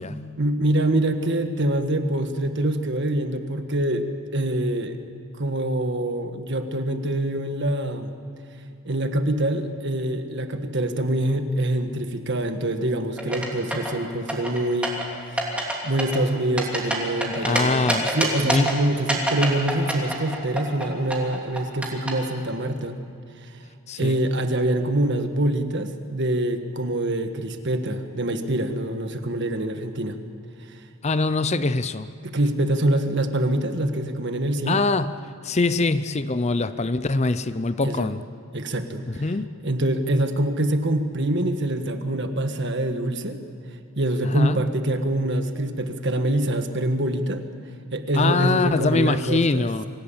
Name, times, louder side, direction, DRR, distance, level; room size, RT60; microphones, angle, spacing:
voice 1, 0.4-5.0 5.4-8.1 8.8-15.0 15.3-15.4 15.8-23.0 23.4-23.6 24.0-30.2 30.7-30.8 32.2-34.8 37.8-38.1 38.5-39.2 39.6-43.4 44.0-47.4 47.9-49.7, right 1 dB, 50° right, 1.6 m, -25 dB
sound 1, 13.2-13.9 14.3-15.0 15.4-15.7 16.0-17.6 17.9-18.7 19.1-20.8 21.1-22.1, right 1 dB, 5° right, 2.9 m, -25 dB
voice 2, 17.4-18.1 18.4-18.7 23.9-24.2 31.0-32.1 34.7-35.1 35.4-38.2 39.1-39.5 44.3-44.6 48.1-49.8, left 3 dB, 30° left, 0.5 m, -23 dB
25.5 x 17.0 x 8.7 m
head